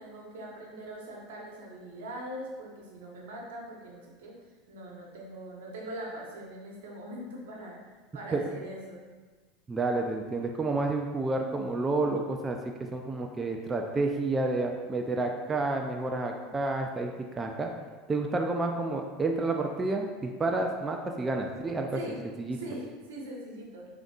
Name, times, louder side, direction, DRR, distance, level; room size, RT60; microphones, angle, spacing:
voice 1, 0.0-4.4 4.7-7.9 8.1-9.1 21.9-22.2 22.5-23.9, right 1 dB, 80° right, -2 dB, 1.0 m, -42 dB
voice 2, 9.7-17.7 18.1-21.9 22.4-22.6, right 2 dB, 20° right, 2 dB, 0.4 m, -30 dB
5.1 x 3.8 x 2.4 m, 1.4 s
hypercardioid pair, 95°, 0 cm